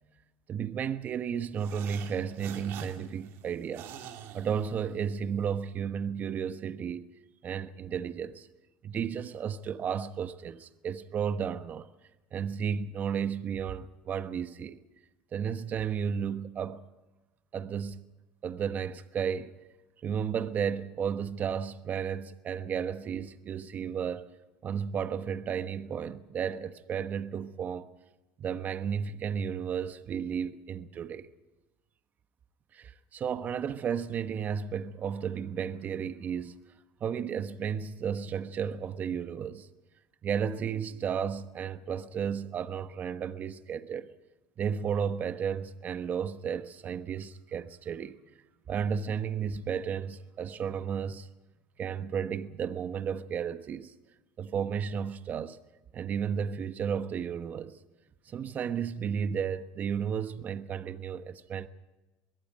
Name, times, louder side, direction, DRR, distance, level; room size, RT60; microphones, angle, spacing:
voice 1, 0.5-3.9 4.3-7.1 7.4-8.5 8.8-11.9 12.3-14.8 15.3-16.9 17.5-18.0 18.4-19.5 20.0-24.3 24.6-27.9 28.4-31.3 32.7-36.6 37.0-39.7 40.2-44.1 44.6-48.2 48.7-51.3 51.8-53.9 54.4-55.6 55.9-57.8 58.3-61.7, right 7 dB, 40° right, 1.1 m, -33 dB
sound 1, 1.6-5.3, right 9 dB, 65° right, 2.7 m, -46 dB
24.0 x 21.5 x 5.4 m
supercardioid pair, 105°, 5 cm